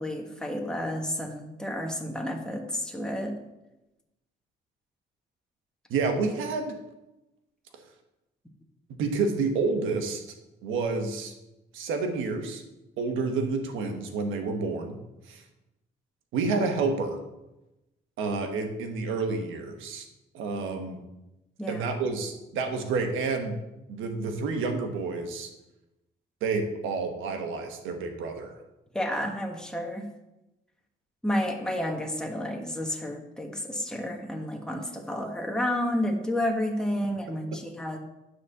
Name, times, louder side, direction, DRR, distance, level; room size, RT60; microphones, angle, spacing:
voice 1, 0.0-3.4 21.6-21.8 28.9-30.1 31.2-38.0, left 1 dB, 5° left, 2 dB, 1.4 m, -31 dB
voice 2, 5.9-6.8 7.7-7.8 9.0-10.2 10.6-11.3 11.7-12.6 13.0-15.0 15.2-15.4 16.3-17.2 18.2-20.1 20.3-21.0 21.7-23.5 23.9-25.5 26.4-28.5, right 4 dB, 90° right, 5 dB, 1.3 m, -29 dB
9.6 x 4.2 x 6.6 m, 0.97 s
cardioid pair, 90°, 20 cm